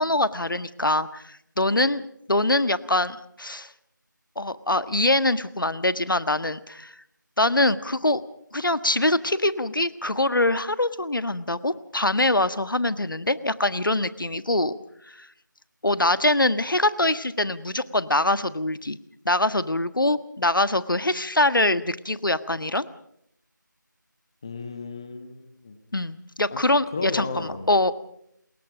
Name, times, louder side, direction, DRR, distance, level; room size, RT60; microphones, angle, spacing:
voice 1, 0.0-2.0 2.3-3.7 4.3-6.9 7.4-8.2 8.5-14.7 15.1-15.3 15.8-19.0 19.2-22.9 25.9-27.9, left 2 dB, 85° left, 13 dB, 1.5 m, -24 dB
voice 2, 24.4-25.8 26.5-26.6 26.9-27.7, left 4 dB, 15° left, 8 dB, 1.1 m, -34 dB
28.0 x 21.5 x 5.1 m, 0.73 s
figure-of-eight pair, 175°, 11 cm